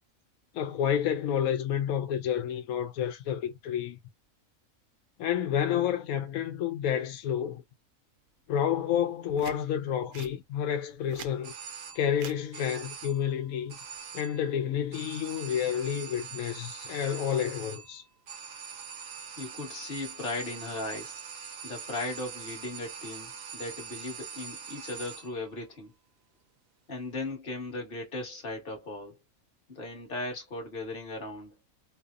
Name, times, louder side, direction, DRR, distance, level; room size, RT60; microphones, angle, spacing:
voice 1, 0.5-4.0 5.2-7.6 8.5-11.5 11.9-13.8 14.1-18.0, left 9 dB, 90° left, 1.0 m, -30 dB
sound 1, 9.3-9.6 10.1-10.3 10.9-11.4 12.1-12.4 13.7-14.0, right 8 dB, 90° right, 1.1 m, -44 dB
sound 2, 11.4-12.3 12.5-13.3 13.7-14.5 14.9-25.5, right 7 dB, 60° right, 0.7 m, -43 dB
voice 2, 19.4-21.2 21.6-25.9 26.9-29.2 29.7-31.5, left 2 dB, 40° left, 1.4 m, -37 dB
3.2 x 2.0 x 2.3 m
omnidirectional pair, 1.4 m